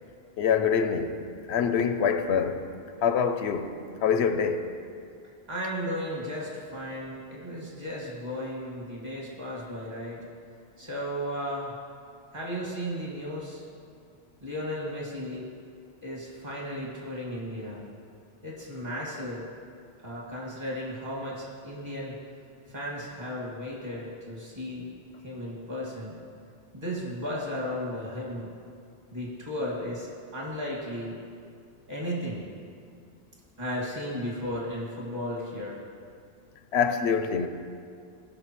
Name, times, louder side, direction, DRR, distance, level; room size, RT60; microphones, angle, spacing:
voice 1, 0.4-1.2 1.5-2.7 3.0-4.7 36.7-37.5, left 6 dB, 90° left, 0.9 m, -25 dB
voice 2, 5.5-10.2 10.8-11.7 12.3-13.6 14.4-15.5 16.0-17.8 18.4-19.5 20.0-22.1 22.7-24.9 25.2-26.2 26.7-28.5 29.1-31.2 31.9-32.5 33.6-35.8, equal, 40° right, 2.3 m, -35 dB
16.0 x 6.5 x 3.1 m
omnidirectional pair, 1.1 m